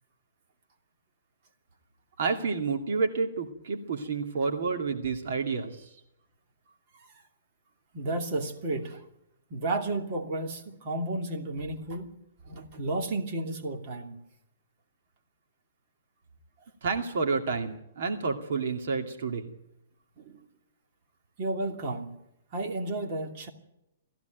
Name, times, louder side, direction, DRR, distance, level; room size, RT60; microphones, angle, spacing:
voice 1, 2.2-5.9 16.8-19.5, right 4 dB, 60° right, 4 dB, 2.4 m, -29 dB
voice 2, 7.9-9.0 9.5-12.1 12.4-14.2 20.2-20.5 21.4-22.2 22.5-23.5, right 2 dB, 35° right, 3 dB, 2.7 m, -32 dB
19.0 x 15.5 x 9.2 m, 0.84 s
hypercardioid pair, 165°, 0 cm